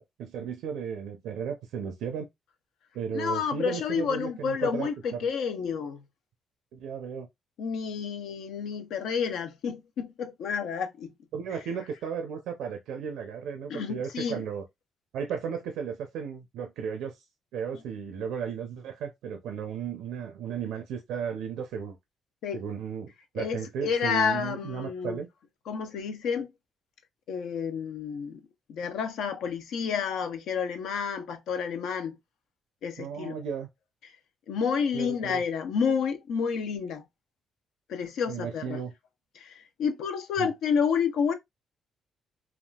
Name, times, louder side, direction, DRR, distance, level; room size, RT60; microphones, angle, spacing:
voice 1, 0.0-2.3 2.9-5.3 6.7-7.3 11.3-14.6 15.1-17.1 17.5-22.0 22.5-25.3 33.0-33.7 34.9-35.4 38.3-38.9 40.4-40.5, right 7 dB, 85° right, 0.5 m, -35 dB
voice 2, 3.1-6.0 7.6-11.1 13.7-14.4 22.4-22.6 23.4-25.2 25.7-26.5 27.3-28.4 28.7-32.2 32.8-33.4 34.5-37.0 37.9-38.8 39.4-41.3, left 6 dB, 80° left, 0.5 m, -30 dB
3.5 x 2.4 x 2.3 m
cardioid pair, 90°, 0 cm